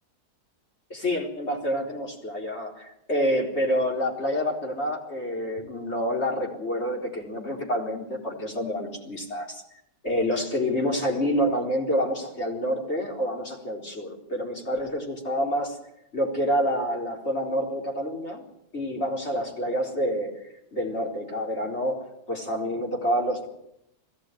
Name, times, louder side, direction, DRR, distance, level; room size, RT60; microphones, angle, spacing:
voice 1, 0.9-9.6 10.0-15.8 16.1-18.4 18.7-23.5, equal, 40° left, -1 dB, 4.5 m, -28 dB
20.5 x 16.0 x 9.4 m, 0.79 s
omnidirectional pair, 1.7 m